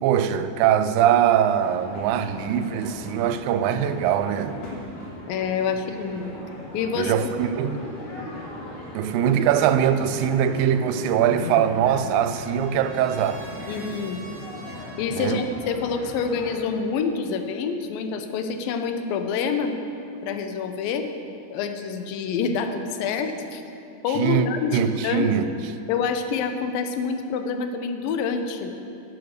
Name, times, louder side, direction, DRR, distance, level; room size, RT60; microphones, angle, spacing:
voice 1, 0.0-4.6 7.0-7.8 8.9-13.4 15.1-15.4 24.2-24.5 24.7-25.5, right 9 dB, 90° right, 2.3 m, -22 dB
sound 1, 1.5-16.7, left 2 dB, 60° left, 3.5 m, -38 dB
voice 2, 5.3-6.3 6.7-7.3 13.7-14.2 15.0-19.8 20.2-21.1 21.5-23.6 24.0-25.3 25.9-28.7, left 5 dB, 85° left, 2.5 m, -27 dB
Trumpet, 11.3-15.2, right 3 dB, 35° right, 1.5 m, -47 dB
11.5 x 7.7 x 6.5 m
omnidirectional pair, 4.0 m